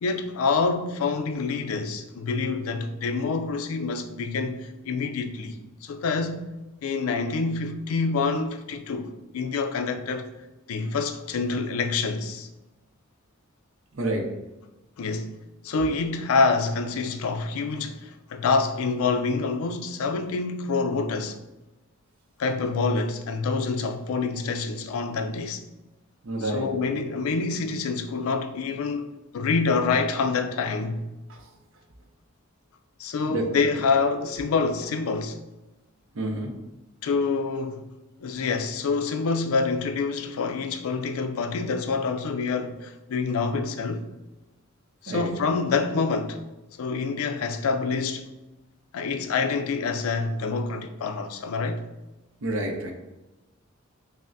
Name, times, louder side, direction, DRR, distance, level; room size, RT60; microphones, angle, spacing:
voice 1, 0.0-6.5 6.8-10.3 10.7-12.5 15.0-15.4 15.6-21.4 22.4-25.6 26.4-31.0 33.0-35.4 37.0-37.9 38.2-44.0 45.0-46.4 46.8-48.3 48.9-51.9, left 4 dB, 85° left, 0.4 m, -27 dB
voice 2, 13.9-14.3 26.2-26.7 31.3-31.5 33.3-33.6 36.1-36.5 45.1-45.3 52.4-52.9, right 1 dB, 65° right, 0.6 m, -29 dB
5.5 x 2.0 x 2.6 m
head